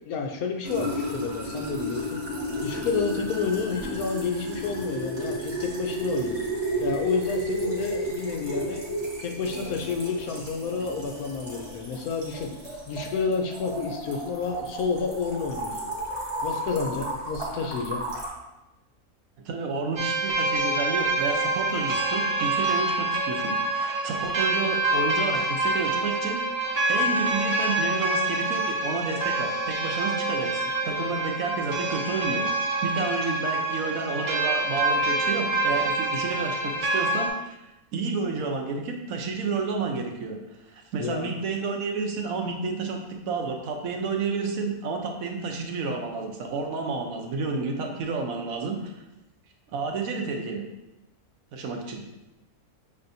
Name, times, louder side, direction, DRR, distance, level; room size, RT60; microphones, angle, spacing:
voice 1, 0.1-2.2 2.6-6.4 6.8-8.8 9.2-15.8 16.4-18.0 41.0-41.3, left 5 dB, 80° left, 2 dB, 1.1 m, -30 dB
sound 1, 0.6-18.3, right 1 dB, 20° right, 0.9 m, -33 dB
voice 2, 19.4-26.4 26.9-37.6 37.9-40.4 40.7-48.9 49.7-50.6 51.5-52.0, right 4 dB, 75° right, 2 dB, 1.1 m, -30 dB
sound 2, 20.0-37.3, right 2 dB, 55° right, 0.7 m, -26 dB
5.8 x 3.4 x 2.6 m, 0.97 s
omnidirectional pair, 1.5 m